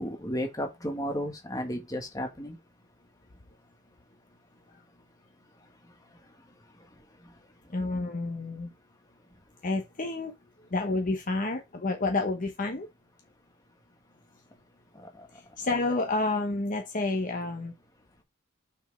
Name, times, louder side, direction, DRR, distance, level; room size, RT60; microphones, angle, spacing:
voice 1, 0.0-2.6 15.0-15.1, equal, 15° left, 1.6 m, -33 dB
voice 2, 7.7-8.7 9.6-10.3 10.7-12.9 15.3-17.7, left 2 dB, 40° left, 0.9 m, -29 dB
6.1 x 4.6 x 5.2 m
head